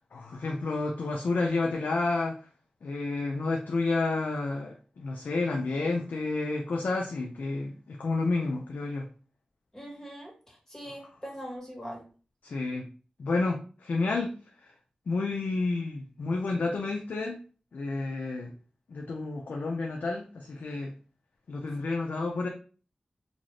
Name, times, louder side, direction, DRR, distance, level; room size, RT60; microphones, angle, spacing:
voice 1, 0.1-2.4 2.8-9.1 12.4-12.9 13.2-14.3 14.6-14.7 15.1-17.4 17.7-18.5 18.9-20.9 21.5-22.5, left 3 dB, 85° left, 1 dB, 0.4 m, -30 dB
voice 2, 9.7-12.1, equal, 15° left, -2 dB, 1.4 m, -42 dB
2.5 x 2.4 x 3.2 m, 0.38 s
cardioid pair, 50°, 3 cm